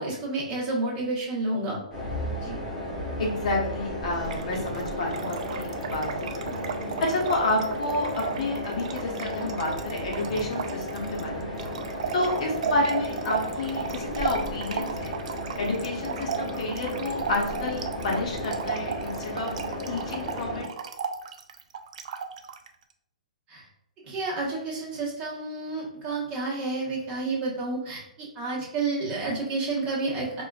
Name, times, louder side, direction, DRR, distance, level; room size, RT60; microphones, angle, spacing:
voice 1, 0.0-1.8 2.4-2.6 23.5-23.6 24.0-30.4, right 3 dB, 30° right, -4 dB, 1.2 m, -30 dB
sound 1, 1.9-20.6, left 1 dB, ahead, 1.4 m, -34 dB
voice 2, 3.2-6.5 7.0-11.6 12.1-15.2 15.6-19.5 19.9-20.7, left 2 dB, 60° left, -1 dB, 0.9 m, -29 dB
Trickle dribble / Fill (with liquid), 4.2-22.7, right 7 dB, 60° right, 0.3 m, -35 dB
4.2 x 2.4 x 2.3 m, 0.82 s
figure-of-eight pair, 120°, 4 cm